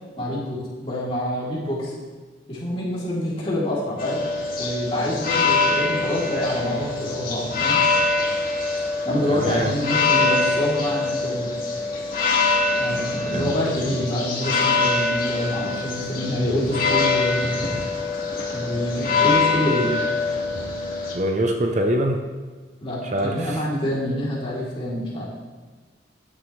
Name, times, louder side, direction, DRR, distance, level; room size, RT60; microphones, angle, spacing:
voice 1, 0.2-1.9 2.5-4.2 4.6-7.8 9.0-11.5 12.7-17.6 18.5-19.9 22.8-25.2, left 1 dB, 30° left, -7 dB, 3.2 m, -26 dB
sound 1, 4.0-21.1, left 3 dB, 50° left, 2.1 m, -24 dB
voice 2, 9.3-9.7 13.3-13.5 21.1-22.2 23.1-23.6, right 1 dB, 40° right, 3 dB, 0.7 m, -23 dB
13.0 x 9.8 x 3.3 m, 1.4 s
head